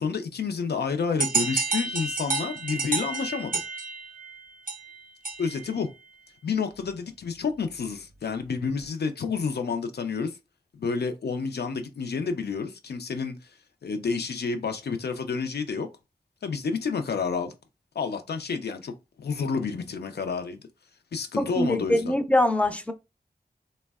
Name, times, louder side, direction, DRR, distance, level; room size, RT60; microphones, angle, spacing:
voice 1, 0.0-3.6 5.4-5.9 6.4-10.3 10.7-13.4 13.8-15.9 16.4-17.5 18.0-18.9 19.2-20.6 21.1-22.1, left 5 dB, 90° left, 0.4 m, -29 dB
sound 1, 1.2-5.7, right 3 dB, 60° right, 0.5 m, -30 dB
voice 2, 21.4-22.9, left 1 dB, 10° left, 0.3 m, -23 dB
3.4 x 2.1 x 2.3 m
wide cardioid pair, 90°, 16 cm